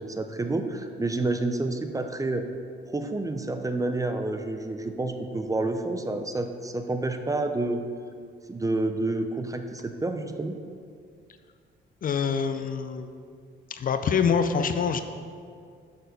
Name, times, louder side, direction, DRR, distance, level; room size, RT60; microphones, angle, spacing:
voice 1, 0.0-2.5 2.9-7.8 8.5-10.6, right 2 dB, 15° right, 7 dB, 0.5 m, -29 dB
voice 2, 12.0-13.1 13.7-15.0, left 6 dB, 45° left, 9 dB, 0.5 m, -25 dB
6.6 x 6.2 x 4.0 m, 2.2 s
cardioid pair, 90°, 20 cm